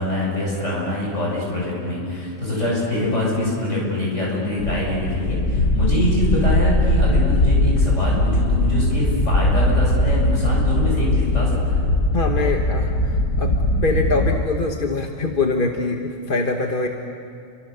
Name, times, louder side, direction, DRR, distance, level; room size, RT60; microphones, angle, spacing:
voice 1, 0.0-11.8, left 1 dB, 65° left, -3 dB, 8.0 m, -24 dB
sound 1, 4.6-14.4, left 1 dB, 85° left, 1.8 m, -20 dB
voice 2, 12.1-13.5 13.8-16.9, left 3 dB, 45° left, 3 dB, 1.5 m, -23 dB
30.0 x 24.5 x 6.9 m, 2.4 s
omnidirectional pair, 1.3 m